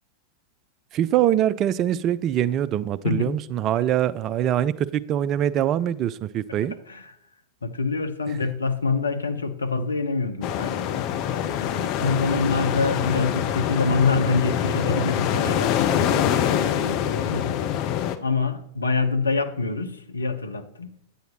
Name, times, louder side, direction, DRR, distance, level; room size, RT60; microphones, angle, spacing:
voice 1, 0.9-6.7, right 11 dB, 35° right, 18 dB, 0.3 m, -23 dB
voice 2, 3.0-3.4 6.9-7.1 7.6-10.9 11.3-17.6 18.2-20.9, left 3 dB, 75° left, 7 dB, 0.8 m, -26 dB
sound 1, 10.4-18.2, left 10 dB, 40° left, 0.6 m, -25 dB
9.1 x 9.0 x 2.9 m, 0.72 s
figure-of-eight pair, 90°, 0 cm